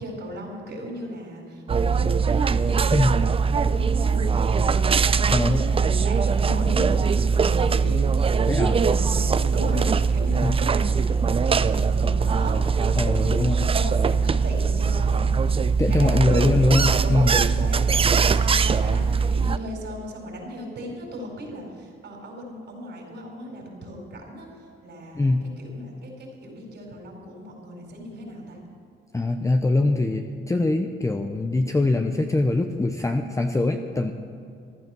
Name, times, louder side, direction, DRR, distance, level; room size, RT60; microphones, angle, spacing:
voice 1, 0.0-16.5 17.0-28.6, equal, 60° right, 0 dB, 4.6 m, -37 dB
sound 1, 1.7-19.6, right 5 dB, 30° right, 0.5 m, -21 dB
voice 2, 5.3-5.6 8.5-8.8 10.4-10.6 13.0-13.6 15.8-17.4 25.1-25.5 29.1-34.1, left 2 dB, 15° left, 5 dB, 0.8 m, -23 dB
14.5 x 11.5 x 6.1 m, 2.5 s
cardioid pair, 90°, 20 cm